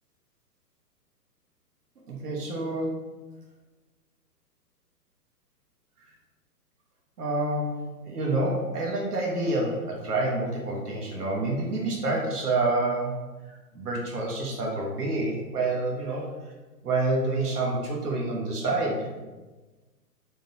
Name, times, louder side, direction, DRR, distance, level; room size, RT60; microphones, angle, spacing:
voice 1, 2.1-3.1 7.2-13.2 13.5-16.3 16.8-19.1, right 2 dB, 65° right, -2 dB, 1.1 m, -28 dB
3.7 x 3.0 x 2.7 m, 1.2 s
figure-of-eight pair, 120°, 49 cm